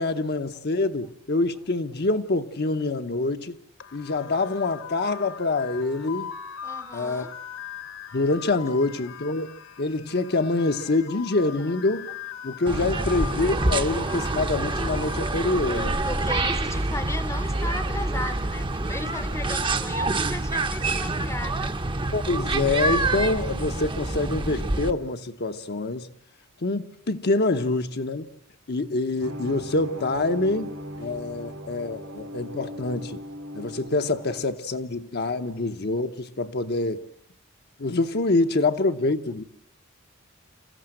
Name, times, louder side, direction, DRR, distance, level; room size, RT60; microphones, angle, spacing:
voice 1, 0.0-3.6 3.9-6.3 6.9-7.3 8.1-12.1 12.4-16.0 22.1-26.1 26.6-28.2 28.7-33.2 33.5-37.0 37.8-39.4, left 2 dB, 50° left, 0.9 m, -26 dB
sound 1, 3.8-15.9, left 8 dB, 65° left, 1.6 m, -41 dB
voice 2, 6.6-7.3 10.8-10.9 15.7-21.9 35.5-35.6, left 2 dB, 15° left, 0.8 m, -37 dB
sound 2, 12.7-24.9, right 2 dB, 25° right, 0.8 m, -27 dB
sound 3, 29.2-34.4, equal, 85° right, 2.8 m, -38 dB
27.0 x 15.0 x 7.8 m
head